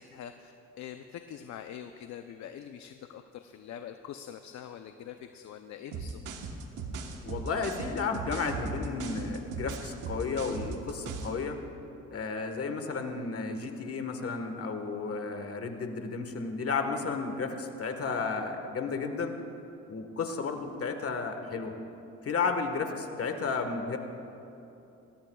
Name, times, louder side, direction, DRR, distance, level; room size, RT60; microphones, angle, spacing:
voice 1, 0.0-6.2, left 9 dB, 65° left, 7 dB, 0.6 m, -44 dB
sound 1, 5.9-11.4, right 4 dB, 90° right, 1.2 m, -38 dB
voice 2, 7.2-11.6 12.1-19.4 19.9-21.7 22.2-24.0, left 4 dB, 50° left, 6 dB, 1.4 m, -33 dB
21.5 x 17.5 x 2.3 m, 3.0 s
cardioid pair, 90°, 30 cm